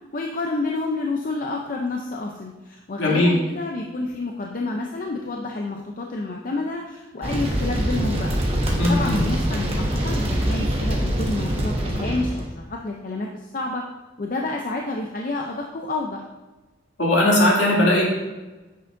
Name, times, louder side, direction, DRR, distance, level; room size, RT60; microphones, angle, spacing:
voice 1, 0.1-8.4 8.9-13.8 14.2-16.2, left 2 dB, 40° left, 1 dB, 0.5 m, -29 dB
voice 2, 3.0-3.3 8.8-9.2 17.0-18.0, left 1 dB, 65° left, -5 dB, 2.5 m, -18 dB
sound 1, 7.2-12.5, right 1 dB, 30° right, 1.3 m, -24 dB
8.8 x 6.8 x 2.6 m, 1.2 s
head